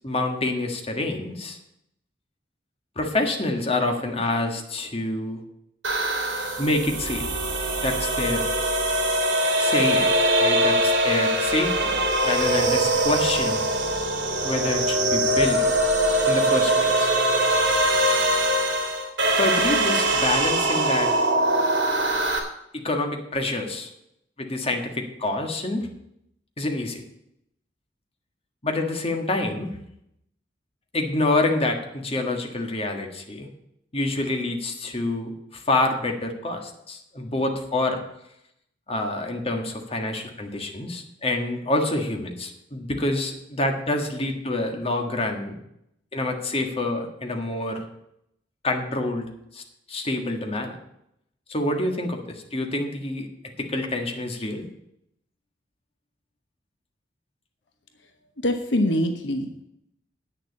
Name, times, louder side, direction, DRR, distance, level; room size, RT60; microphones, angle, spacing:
voice 1, 0.0-1.6 2.9-5.4 6.6-7.3 7.8-8.5 9.6-13.6 14.4-15.6 16.3-17.1 19.4-21.1 22.7-23.9 24.4-25.9 26.6-27.0 28.6-29.7 30.9-33.5 33.9-38.0 38.9-45.6 46.1-47.8 48.6-49.3 49.5-49.6 49.9-50.8 51.5-53.3 53.6-54.6, left 2 dB, 35° left, 3 dB, 1.6 m, -27 dB
sound 1, 5.8-22.4, right 1 dB, 75° right, 2.8 m, -22 dB
voice 2, 58.4-59.6, left 1 dB, 70° left, 6 dB, 1.1 m, -24 dB
8.9 x 6.9 x 8.5 m, 0.78 s
head